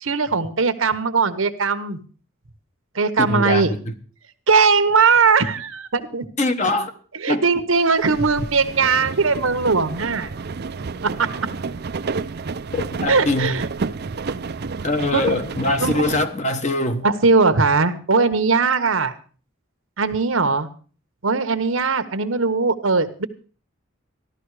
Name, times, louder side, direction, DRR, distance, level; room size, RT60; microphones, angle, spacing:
voice 1, 0.0-2.0 2.9-3.7 4.5-6.3 7.2-10.3 11.2-11.3 13.1-13.6 15.1-15.4 15.8-15.9 17.0-19.1 20.0-20.7 21.2-23.3, right 4 dB, 80° right, 10 dB, 1.2 m, -19 dB
voice 2, 3.2-3.9 6.4-6.9 7.3-7.4 12.7-13.6 14.8-17.1, left 2 dB, 35° left, 8 dB, 1.2 m, -22 dB
sound 1, 7.7-16.3, right 4 dB, 50° right, 0.5 m, -31 dB
14.5 x 12.0 x 4.8 m, 0.39 s
head